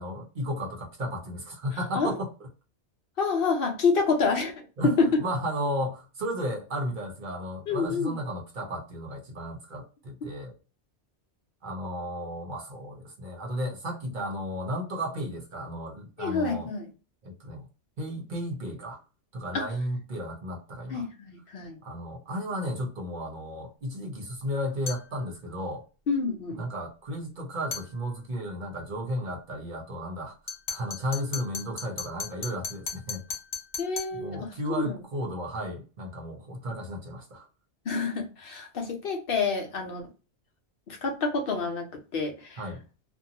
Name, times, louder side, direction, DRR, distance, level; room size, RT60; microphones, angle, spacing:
voice 1, 0.0-2.3 4.8-10.5 11.6-16.7 17.2-17.7 18.0-19.0 19.3-21.1 21.8-25.8 26.5-33.2 34.1-37.5 42.6-42.8, equal, 55° right, 0.8 m, -34 dB
voice 2, 3.2-4.5 4.8-5.1 7.7-8.2 16.2-16.9 19.5-19.6 20.9-21.8 26.1-26.6 33.8-35.0 37.9-40.1 40.9-42.6, left 4 dB, 65° left, 0.8 m, -28 dB
sound 1, 24.9-25.1 27.7-27.9 30.5-34.2, left 5 dB, 80° left, 1.1 m, -36 dB
2.6 x 2.2 x 2.7 m
omnidirectional pair, 1.1 m